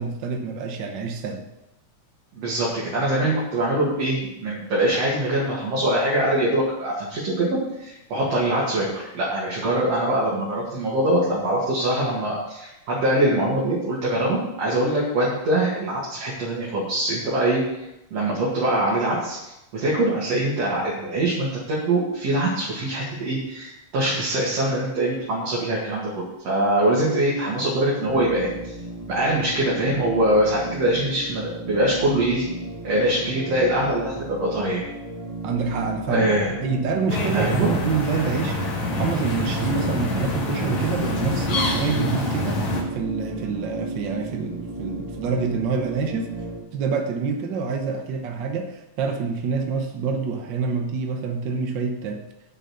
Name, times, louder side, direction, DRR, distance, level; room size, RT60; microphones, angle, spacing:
voice 1, 0.0-1.5 35.4-36.3 36.6-46.3 46.7-52.2, right 5 dB, 75° right, 3 dB, 1.0 m, -27 dB
voice 2, 2.3-17.8 18.1-28.7 29.1-32.4 32.8-34.8 36.1-36.5 37.3-37.7, right 1 dB, 55° right, -6 dB, 3.2 m, -23 dB
sound 1, 28.0-46.6, right 1 dB, 20° right, 1.0 m, -34 dB
sound 2, 37.1-42.8, left 1 dB, 65° left, 3.0 m, -26 dB
8.5 x 6.5 x 7.8 m, 0.89 s
omnidirectional pair, 3.6 m